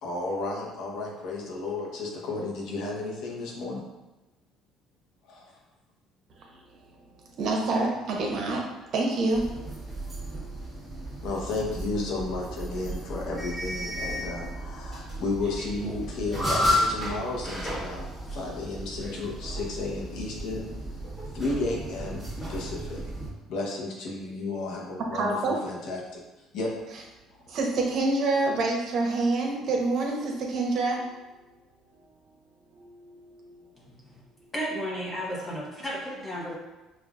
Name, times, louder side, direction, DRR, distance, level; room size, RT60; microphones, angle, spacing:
voice 1, 0.0-3.9 5.3-5.5 11.2-20.7 21.3-22.2 22.5-23.0 23.5-26.2 26.5-26.7, left 3 dB, 70° left, -1 dB, 0.9 m, -33 dB
voice 2, 7.4-8.7 8.9-9.5 25.1-25.5 27.5-31.1 32.8-33.6, right 2 dB, 55° right, 0 dB, 0.8 m, -27 dB
sound 1, 9.3-23.3, equal, 5° left, 1.3 m, -33 dB
voice 3, 34.5-36.5, equal, 20° left, -5 dB, 1.0 m, -33 dB
5.4 x 2.4 x 2.4 m, 1.1 s
cardioid pair, 110°, 0 cm